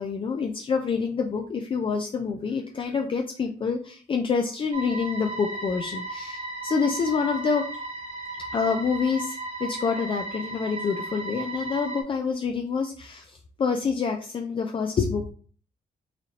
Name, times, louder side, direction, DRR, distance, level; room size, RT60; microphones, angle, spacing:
voice 1, 0.0-7.6 8.5-15.3, left 5 dB, 35° left, 4 dB, 0.4 m, -27 dB
sound 1, 4.7-12.0, right 2 dB, 40° right, 1.2 m, -35 dB
4.1 x 2.6 x 3.1 m, 0.43 s
cardioid pair, 115°, 16 cm